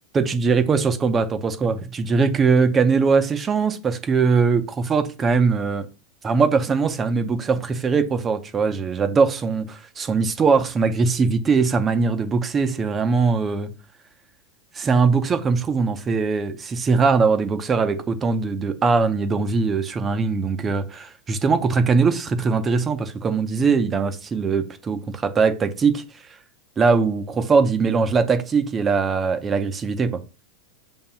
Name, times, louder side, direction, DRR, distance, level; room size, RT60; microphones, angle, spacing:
voice 1, 0.1-5.8 6.2-13.7 14.7-26.0 26.8-30.2, right 4 dB, 15° right, 0.7 m, -21 dB
7.2 x 2.9 x 5.6 m
supercardioid pair, 160°, 0 cm